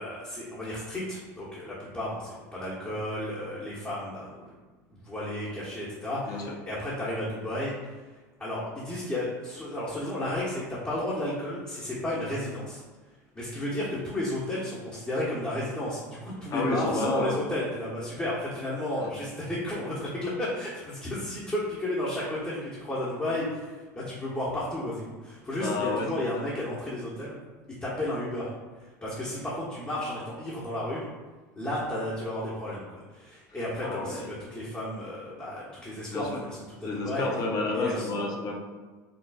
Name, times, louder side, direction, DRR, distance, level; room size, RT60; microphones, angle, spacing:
voice 1, 0.0-4.6 5.0-7.7 8.4-12.8 13.3-27.3 27.7-28.5 28.8-31.0 31.5-37.3 37.7-38.3, left 1 dB, 15° left, -8 dB, 1.3 m, -33 dB
voice 2, 16.5-17.4 19.0-19.1 25.6-26.4 33.8-34.3 36.1-36.4 36.8-38.6, left 2 dB, 40° left, 0 dB, 0.8 m, -30 dB
5.3 x 3.0 x 2.4 m, 1.3 s
hypercardioid pair, 80°, 9 cm